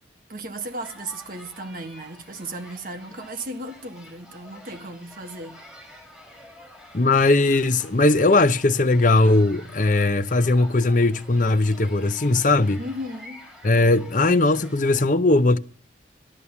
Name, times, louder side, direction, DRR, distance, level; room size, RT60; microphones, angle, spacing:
voice 1, 0.3-5.7 12.7-13.5, right 1 dB, 50° right, 1.6 m, -35 dB
sound 1, 0.6-15.1, left 1 dB, ahead, 6.1 m, -48 dB
voice 2, 6.9-12.8 13.6-15.6, left 2 dB, 45° left, 0.8 m, -19 dB
13.0 x 12.5 x 7.1 m
head